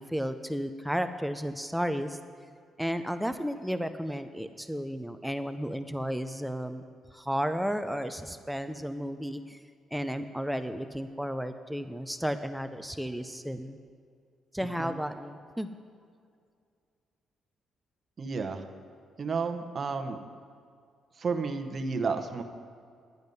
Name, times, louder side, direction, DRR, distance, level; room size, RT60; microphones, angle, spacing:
voice 1, 0.0-2.2 2.8-6.8 7.1-9.6 9.9-13.8 14.5-15.7, equal, ahead, 9 dB, 0.5 m, -33 dB
voice 2, 18.2-18.6 19.2-20.2 21.2-22.4, right 4 dB, 40° right, 6 dB, 1.0 m, -31 dB
11.0 x 9.3 x 5.4 m, 2.2 s
cardioid pair, 90°, 0 cm